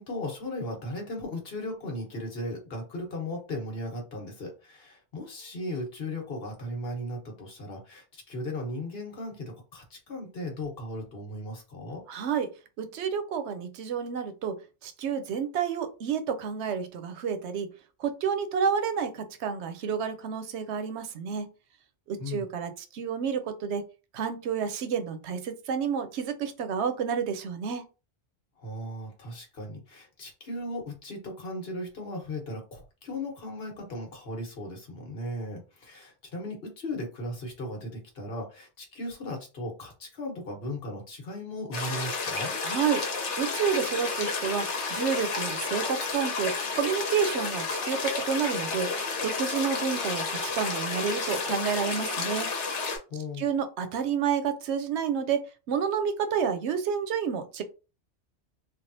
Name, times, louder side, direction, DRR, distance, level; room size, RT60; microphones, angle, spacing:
voice 1, 0.0-12.0 22.2-22.4 28.6-42.5 53.1-53.4, left 1 dB, 55° left, 1 dB, 1.3 m, -37 dB
voice 2, 12.1-12.5 12.8-14.6 14.8-17.7 18.0-21.5 22.1-23.8 24.1-27.9 42.6-43.0 43.4-48.9 49.2-52.5 53.4-55.4 55.7-57.6, right 7 dB, 75° right, 9 dB, 0.9 m, -29 dB
sound 1, 41.7-53.0, left 4 dB, 80° left, 1.2 m, -31 dB
3.4 x 2.3 x 2.6 m, 0.31 s
omnidirectional pair, 1.2 m